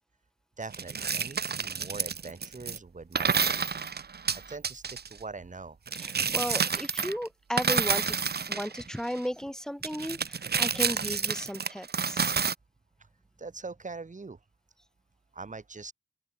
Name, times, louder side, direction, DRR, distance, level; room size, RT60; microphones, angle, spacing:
voice 1, 0.6-3.8 4.3-5.8 13.0-13.1 13.4-14.4 15.3-15.9, right 4 dB, 45° right, 5.5 m, -42 dB
sound 1, 0.7-2.8 3.1-5.1 5.9-7.3 7.6-9.2 9.8-12.5, right 6 dB, 65° right, 3.1 m, -29 dB
voice 2, 6.0-8.2 8.5-12.4, equal, 5° left, 6.1 m, -35 dB
open air
cardioid pair, 55°, 18 cm